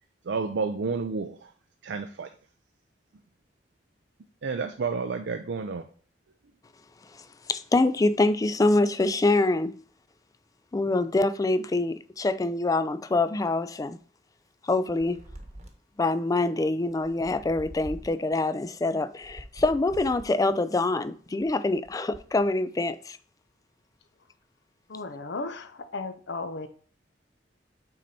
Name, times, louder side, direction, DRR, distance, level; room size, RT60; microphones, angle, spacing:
voice 1, 0.2-1.5 1.8-2.3 4.4-5.9, right 4 dB, 85° right, 0.5 m, -30 dB
voice 2, 7.5-9.8 10.7-14.0 14.6-15.2 16.0-23.2, left 2 dB, 20° left, 0.3 m, -25 dB
sound 1, 14.9-16.0 16.9-18.3 19.1-20.5 21.2-22.5, equal, 40° right, 1.1 m, -45 dB
voice 3, 24.9-26.7, left 3 dB, 75° left, 0.7 m, -35 dB
6.3 x 4.0 x 4.2 m
head